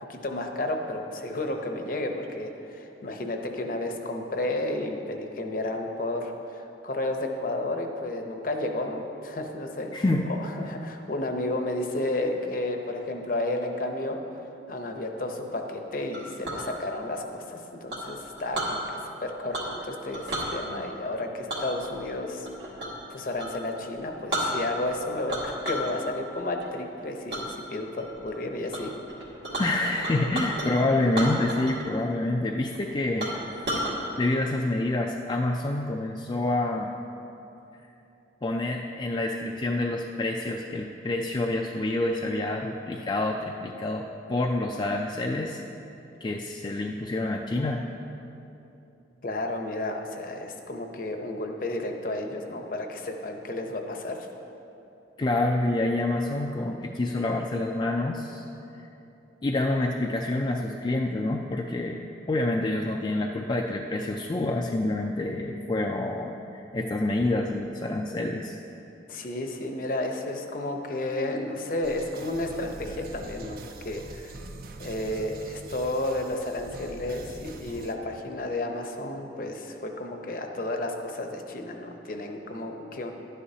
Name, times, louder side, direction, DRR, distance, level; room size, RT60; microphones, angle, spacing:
voice 1, 0.1-9.9 10.2-14.2 14.7-22.5 23.1-28.9 49.2-54.3 69.1-74.5 74.8-83.1, left 1 dB, 50° left, 4 dB, 0.8 m, -32 dB
voice 2, 9.9-10.3 29.6-33.3 34.2-36.9 38.4-44.0 44.3-45.6 46.2-47.8 55.2-58.4 59.4-62.0 62.3-68.6, left 2 dB, 25° left, 1 dB, 0.3 m, -27 dB
Chink clink, 16.1-16.7 17.9-18.8 19.5-19.8 20.1-20.5 21.5-23.0 23.4-23.6 24.0-24.1 24.3-24.9 25.3-25.9 26.3-26.7 27.3-27.4 28.0-28.3 28.7-28.8 29.1-30.7 31.1-31.9 32.2-32.3 32.7-32.8 33.2-33.9, right 1 dB, 70° right, 1.8 m, -32 dB
sound 1, 71.8-77.9, right 2 dB, 55° right, 0.5 m, -43 dB
11.5 x 9.9 x 2.8 m, 2.9 s
head